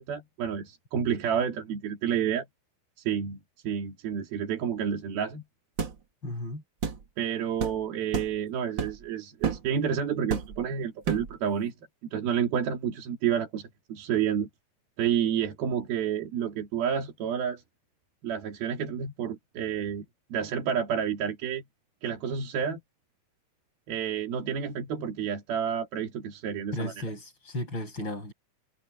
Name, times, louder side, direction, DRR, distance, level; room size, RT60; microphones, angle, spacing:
voice 1, 0.0-2.5 3.1-3.4 3.6-5.4 7.2-11.7 12.1-14.5 15.0-17.6 18.2-20.0 20.3-21.6 22.0-22.8 23.9-26.9, right 8 dB, 80° right, 4.5 m, -29 dB
sound 1, 5.8-6.0 6.8-7.0 7.6-7.8 8.1-8.4 8.8-9.0 9.4-9.7 10.3-10.6 11.0-11.3, right 6 dB, 40° right, 2.0 m, -30 dB
voice 2, 6.2-6.6 26.7-28.3, left 1 dB, 30° left, 8.1 m, -34 dB
omnidirectional pair, 4.3 m